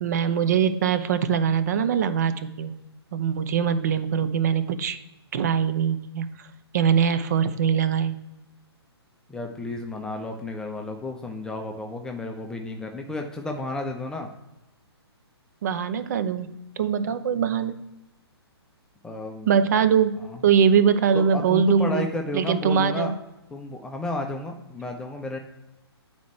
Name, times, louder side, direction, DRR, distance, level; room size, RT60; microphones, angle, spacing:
voice 1, 0.0-2.8 3.1-5.0 5.3-6.3 6.7-8.2 15.6-17.8 19.5-20.2 20.4-22.1 22.3-23.1, right 7 dB, 40° right, 11 dB, 0.7 m, -22 dB
voice 2, 9.3-14.3 19.0-19.6 20.2-20.4 21.1-23.1 23.5-25.4, left 2 dB, 5° left, 3 dB, 0.6 m, -32 dB
9.2 x 4.4 x 4.4 m, 0.98 s
figure-of-eight pair, 130°, 14 cm